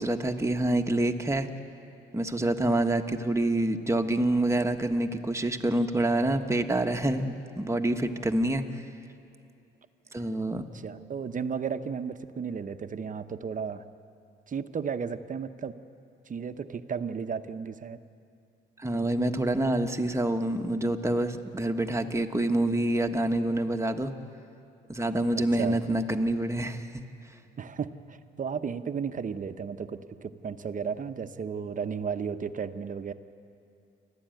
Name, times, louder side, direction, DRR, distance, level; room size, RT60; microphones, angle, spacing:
voice 1, 0.0-1.5 2.1-8.8 10.1-10.6 18.8-24.1 24.9-27.0, right 1 dB, 15° right, 5 dB, 1.3 m, -27 dB
voice 2, 10.7-13.8 14.5-15.7 16.3-18.0 25.3-25.8 27.6-33.1, right 6 dB, 40° right, 10 dB, 1.0 m, -34 dB
28.5 x 12.0 x 9.1 m, 2.6 s
cardioid pair, 90°, 20 cm